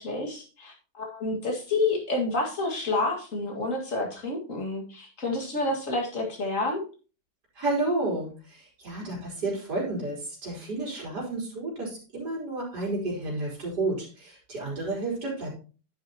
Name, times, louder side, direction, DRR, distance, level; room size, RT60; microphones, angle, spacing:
voice 1, 0.0-6.8, left 2 dB, 40° left, 1 dB, 2.3 m, -29 dB
voice 2, 7.5-15.6, right 2 dB, 50° right, -5 dB, 4.7 m, -31 dB
10.5 x 8.0 x 2.9 m, 0.35 s
omnidirectional pair, 2.3 m